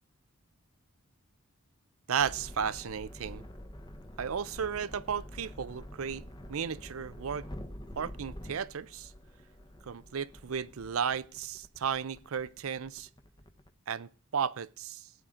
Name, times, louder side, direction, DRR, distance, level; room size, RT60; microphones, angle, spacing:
voice 1, 2.1-3.4 4.2-7.5 8.0-9.1 9.8-13.1 13.9-15.1, right 7 dB, 80° right, 0.5 m, -34 dB
sound 1, 2.2-13.7, equal, 20° left, 0.9 m, -47 dB
15.5 x 9.1 x 3.8 m
head